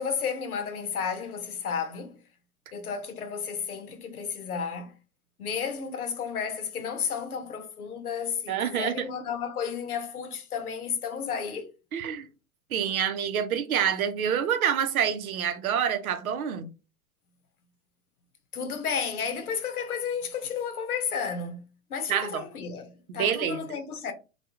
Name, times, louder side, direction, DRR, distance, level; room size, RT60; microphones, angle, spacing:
voice 1, 0.0-2.2 2.7-4.9 5.4-11.7 18.5-24.1, left 6 dB, 90° left, 0.7 m, -32 dB
voice 2, 8.5-9.1 11.9-12.3 12.7-16.7 22.1-22.4 23.1-23.6, right 8 dB, 80° right, 0.7 m, -27 dB
2.3 x 2.3 x 2.9 m
hypercardioid pair, 110°, 43 cm